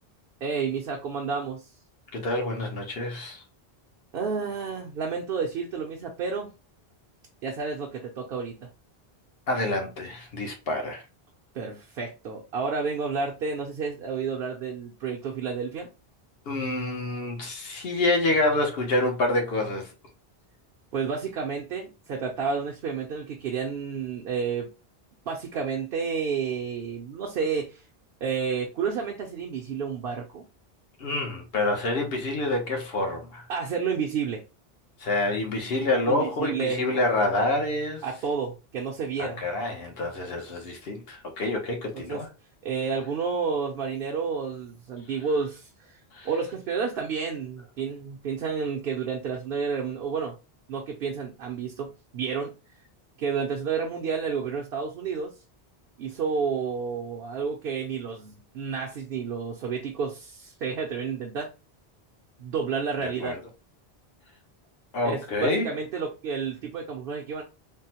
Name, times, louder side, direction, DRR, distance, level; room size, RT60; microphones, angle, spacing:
voice 1, 0.4-1.7 4.1-6.5 7.4-8.7 11.5-15.9 20.9-24.7 25.3-27.8 28.2-30.4 33.5-34.4 36.1-36.9 38.0-39.4 41.9-42.2 42.6-46.0 46.2-50.4 50.7-52.5 53.2-55.3 56.0-61.5 62.4-63.4 65.0-67.4, right 5 dB, 70° right, 0.8 m, -30 dB
voice 2, 2.1-3.4 9.5-11.0 16.5-19.9 31.0-33.5 35.0-38.0 39.2-42.3 46.1-46.3 63.0-63.4 64.9-65.7, left 2 dB, 70° left, 1.0 m, -27 dB
3.6 x 2.0 x 2.8 m
omnidirectional pair, 1.0 m